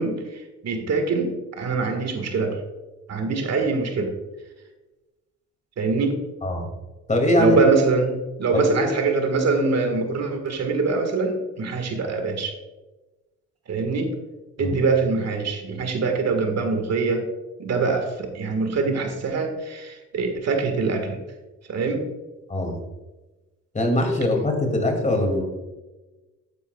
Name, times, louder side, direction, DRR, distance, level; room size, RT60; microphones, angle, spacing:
voice 1, 0.0-2.6 3.1-4.1 5.8-6.2 7.4-12.5 13.7-14.1 14.6-17.2 17.6-21.2 21.7-22.1, right 4 dB, 60° right, 5 dB, 1.7 m, -24 dB
voice 2, 7.1-7.6 8.5-8.9 14.6-14.8 22.5-22.8 23.7-25.4, left 1 dB, 25° left, 3 dB, 2.5 m, -22 dB
11.5 x 9.2 x 2.3 m, 1.1 s
cardioid pair, 90°, 30 cm